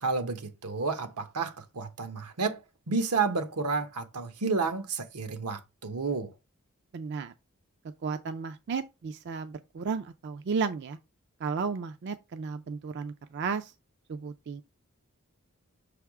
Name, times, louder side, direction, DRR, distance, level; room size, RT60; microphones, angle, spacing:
voice 1, 0.0-6.3, right 4 dB, 85° right, 1.0 m, -31 dB
voice 2, 6.9-7.3 8.0-11.0 11.4-13.7 14.1-14.6, right 5 dB, 50° right, 0.4 m, -33 dB
6.2 x 3.5 x 4.7 m
head